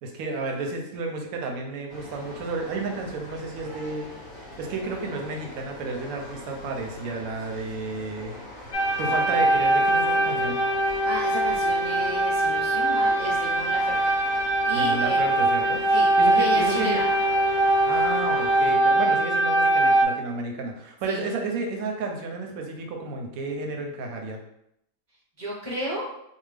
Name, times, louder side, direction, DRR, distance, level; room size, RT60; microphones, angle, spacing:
voice 1, 0.0-4.1 4.6-8.4 9.0-10.6 14.7-15.8 16.2-17.0 17.8-24.4, right 3 dB, 70° right, 2 dB, 0.9 m, -32 dB
sound 1, 1.9-18.7, left 1 dB, 60° left, 0.8 m, -42 dB
sound 2, 8.7-20.0, right 1 dB, 85° left, 1.2 m, -22 dB
voice 2, 11.0-14.1 14.5-15.2 15.9-17.1 21.0-21.2 25.4-26.1, equal, 15° left, -8 dB, 0.6 m, -33 dB
2.7 x 2.2 x 3.3 m, 0.78 s
omnidirectional pair, 1.8 m